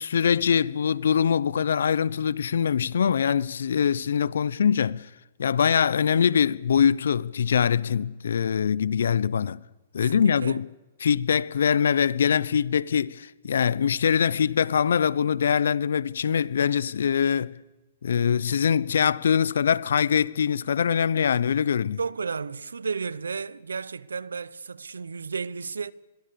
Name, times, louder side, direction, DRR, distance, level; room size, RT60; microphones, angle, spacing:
voice 1, 0.0-5.1 5.4-9.6 9.9-10.7 11.0-17.5 18.0-22.0, left 7 dB, 75° left, 0.8 m, -23 dB
voice 2, 10.0-10.6 22.0-25.9, right 5 dB, 90° right, 0.9 m, -33 dB
27.5 x 22.0 x 6.9 m
hypercardioid pair, 125°, 0 cm